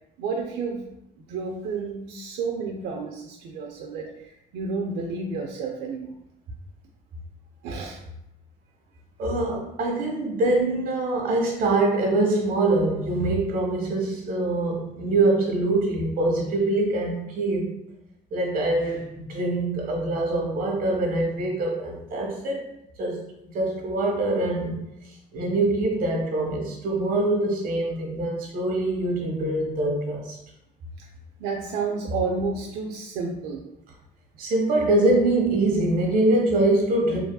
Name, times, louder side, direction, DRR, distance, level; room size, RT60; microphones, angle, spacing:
voice 1, 0.2-0.8 1.2-6.1 7.6-8.0 31.0-31.1 31.4-33.6, right 4 dB, 90° right, 0 dB, 0.4 m, -31 dB
voice 2, 9.2-17.7 18.3-22.7 23.0-23.2 23.5-24.8 25.3-30.4 34.4-37.2, right 2 dB, 60° right, 1 dB, 0.9 m, -24 dB
2.9 x 2.6 x 2.2 m, 0.83 s
cardioid pair, 110°, 17 cm